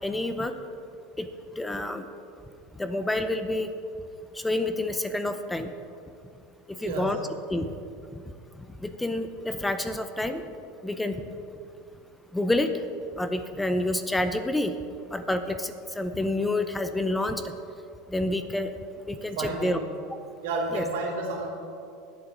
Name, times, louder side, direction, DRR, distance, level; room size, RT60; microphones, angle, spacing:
voice 1, 0.0-0.5 1.2-2.1 2.8-3.7 4.3-5.7 6.7-7.2 7.5-7.7 8.1-8.2 8.6-10.5 10.8-11.2 12.3-12.7 13.2-14.8 15.1-17.5 18.1-18.7 19.1-19.8 20.7-20.8, left 1 dB, 5° left, 9 dB, 0.7 m, -28 dB
voice 2, 6.8-7.2 19.4-19.8 20.4-21.5, right 3 dB, 80° right, -1 dB, 3.2 m, -30 dB
22.0 x 7.8 x 3.9 m, 2.5 s
supercardioid pair, 130°, 0 cm